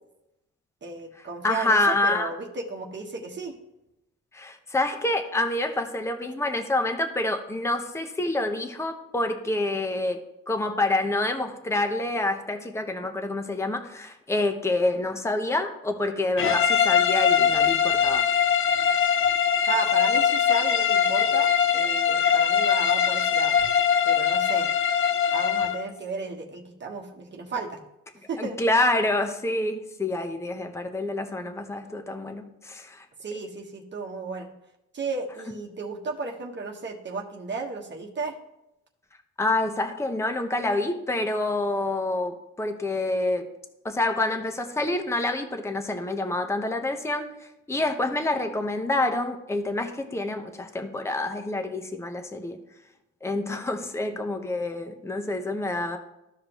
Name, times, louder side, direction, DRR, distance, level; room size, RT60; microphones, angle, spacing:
voice 1, 0.8-3.5 19.7-23.6 24.0-24.7 25.3-27.8 28.3-28.6 33.2-34.5 34.9-38.4, right 4 dB, 35° right, 1 dB, 1.2 m, -34 dB
voice 2, 1.4-2.3 4.3-18.3 28.4-33.0 39.4-43.5 43.8-47.3 47.7-52.6 53.2-56.0, left 2 dB, 10° left, 6 dB, 0.9 m, -27 dB
sound 1, 16.4-25.8, left 8 dB, 45° left, 0.6 m, -22 dB
14.0 x 5.0 x 2.9 m, 0.88 s
cardioid pair, 90°, 30 cm